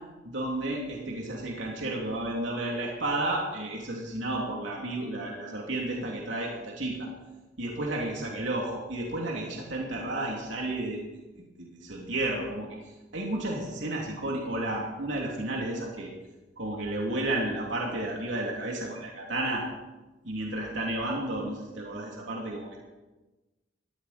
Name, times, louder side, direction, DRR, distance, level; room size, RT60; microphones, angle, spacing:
voice 1, 0.2-7.1 7.6-11.0 11.8-16.1 16.6-19.6 20.2-22.8, right 1 dB, 80° right, -2 dB, 2.9 m, -32 dB
20.0 x 16.0 x 4.3 m, 1.1 s
head